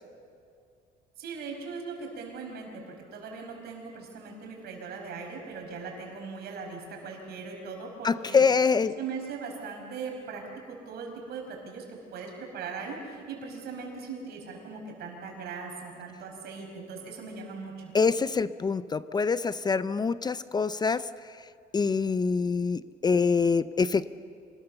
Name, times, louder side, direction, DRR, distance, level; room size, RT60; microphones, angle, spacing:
voice 1, 1.2-8.4 8.9-17.9, right 5 dB, 70° right, 2 dB, 5.7 m, -39 dB
voice 2, 8.0-8.9 17.9-21.1 21.7-24.1, left 5 dB, 25° left, 15 dB, 0.5 m, -25 dB
26.5 x 19.5 x 6.9 m, 2.3 s
cardioid pair, 110°, 17 cm